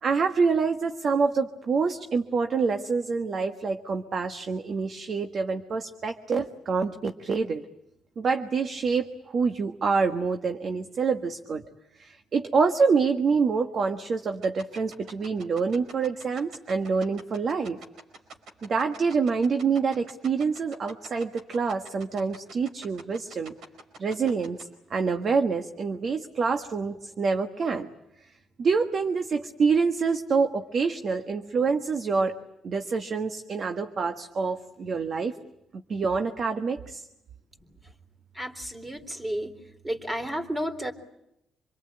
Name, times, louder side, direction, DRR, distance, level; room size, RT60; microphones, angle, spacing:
voice 1, 0.0-7.6 8.2-11.6 12.0-17.8 18.6-23.5 24.0-27.9 28.6-32.4 32.6-35.4 35.9-37.1, right 5 dB, 50° right, 6 dB, 1.5 m, -26 dB
sound 1, 14.4-24.6, right 4 dB, 75° right, 4.6 m, -44 dB
voice 2, 38.3-39.5 39.8-40.9, equal, 20° right, 6 dB, 3.7 m, -32 dB
26.5 x 22.5 x 8.8 m, 0.84 s
cardioid pair, 90°, 0 cm